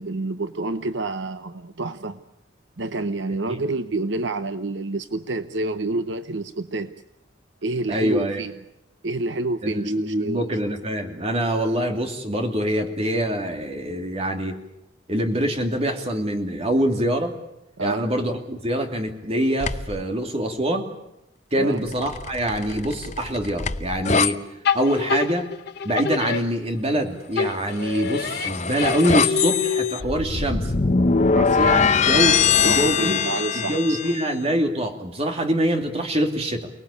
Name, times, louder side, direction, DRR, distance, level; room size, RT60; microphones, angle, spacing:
voice 1, 0.0-2.2 2.8-6.9 7.6-8.6 9.0-10.4 17.8-18.1 21.5-21.8 31.3-31.6 32.6-34.0, right 2 dB, 70° right, 10 dB, 0.9 m, -28 dB
voice 2, 7.9-8.4 9.6-14.6 15.1-17.3 17.8-20.9 21.5-24.4 24.7-25.5 25.8-30.7 31.6-33.1 33.5-36.7, equal, 30° right, 4 dB, 2.9 m, -24 dB
sound 1, 19.6-20.0 21.9-24.3 27.8-34.2, left 5 dB, 40° left, 0.8 m, -22 dB
sound 2, 24.6-27.0 27.4-30.2, left 6 dB, 60° left, 1.2 m, -27 dB
29.0 x 19.5 x 8.6 m, 0.88 s
head